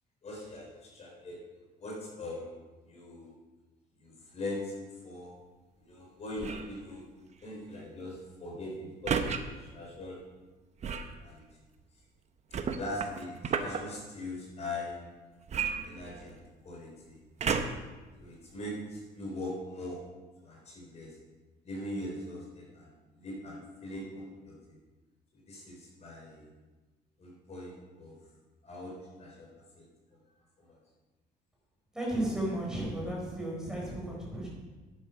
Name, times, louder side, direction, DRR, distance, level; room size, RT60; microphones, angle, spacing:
voice 1, 0.2-1.4 1.8-3.3 4.0-4.7 5.0-5.3 5.8-10.2 10.8-11.4 12.5-15.0 15.8-17.2 18.2-20.0 20.4-21.2 21.6-24.5 25.3-26.5 27.2-28.2 28.6-29.5 29.8-29.9 30.6-30.7, left 1 dB, 40° left, -3 dB, 3.9 m, -41 dB
sound 1, 6.4-6.8 9.1-9.4 10.8-11.2 12.5-13.8 15.5-16.5 17.4-17.9 18.6-18.7, right 6 dB, 40° right, 1.0 m, -32 dB
voice 2, 31.9-34.5, right 1 dB, 5° right, -4 dB, 4.6 m, -34 dB
10.5 x 9.2 x 5.8 m, 1.2 s
cardioid pair, 110°, 17 cm